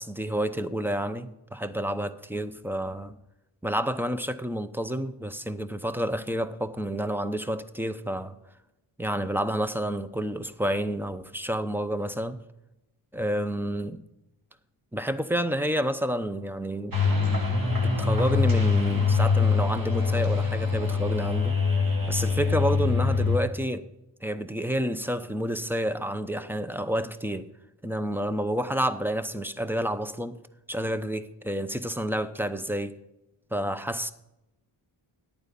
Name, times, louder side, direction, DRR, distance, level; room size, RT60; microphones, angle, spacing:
voice 1, 0.0-3.1 3.6-8.3 9.0-12.4 13.1-14.0 14.9-16.9 17.8-21.6 22.1-23.9 24.2-27.5 27.8-30.4 30.7-32.9 33.5-34.1, equal, 5° right, 0.7 m, -29 dB
sound 1, 16.9-23.4, left 4 dB, 40° right, 2.4 m, -24 dB
11.5 x 8.8 x 5.3 m
wide cardioid pair, 85°, 50 cm